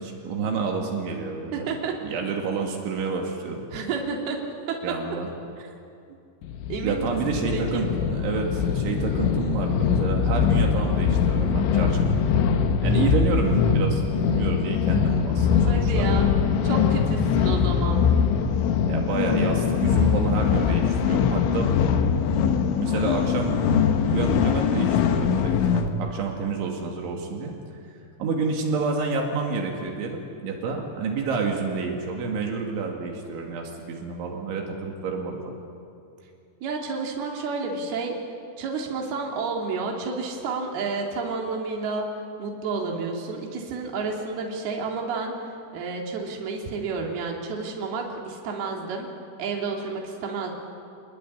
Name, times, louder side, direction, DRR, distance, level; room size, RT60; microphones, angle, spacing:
voice 1, 0.0-1.7 2.0-3.6 4.8-5.3 6.8-16.2 18.9-21.7 22.8-23.8 24.1-27.5 28.2-35.4, right 4 dB, 80° right, 1 dB, 4.7 m, -29 dB
voice 2, 1.5-1.9 3.7-4.4 6.1-6.2 6.7-7.9 15.6-16.3 16.6-18.1 36.6-38.1 38.6-42.0 42.4-49.1 49.4-50.5, right 4 dB, 60° right, 0 dB, 4.5 m, -30 dB
sound 1, 6.4-25.9, left 7 dB, 80° left, 3.7 m, -22 dB
27.5 x 20.5 x 9.8 m, 2.5 s
omnidirectional pair, 5.4 m